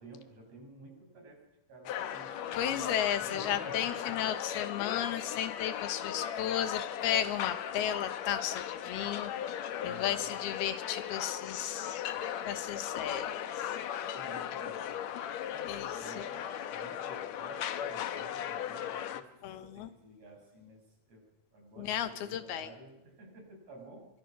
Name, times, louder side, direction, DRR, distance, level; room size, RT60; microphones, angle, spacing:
voice 1, 0.0-2.9 3.3-4.4 9.8-10.3 13.0-13.1 14.2-14.8 15.2-24.1, right 2 dB, 40° right, 1 dB, 7.9 m, -52 dB
sound 1, 1.8-19.2, left 9 dB, 65° left, 1.8 m, -37 dB
voice 2, 2.6-9.3 9.8-12.1 12.5-13.7 15.7-15.9 19.4-19.9 21.8-22.7, left 10 dB, 85° left, 10 dB, 3.4 m, -34 dB
25.0 x 24.0 x 6.3 m, 0.89 s
omnidirectional pair, 4.3 m